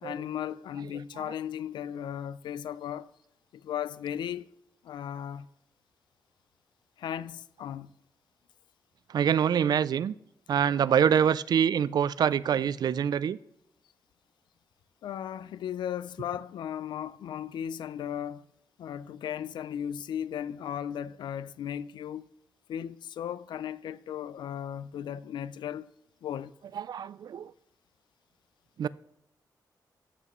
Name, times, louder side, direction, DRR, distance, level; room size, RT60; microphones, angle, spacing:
voice 1, 0.0-3.1 3.5-4.5 4.8-5.5 7.0-7.9 15.0-18.4 18.8-22.3 22.7-25.9 26.2-26.5, left 9 dB, 90° left, 0.4 m, -36 dB
voice 2, 9.1-10.1 10.5-13.4 26.8-27.5 28.8-28.9, right 8 dB, 60° right, 0.4 m, -25 dB
13.5 x 8.0 x 3.1 m
cardioid pair, 90°, 8 cm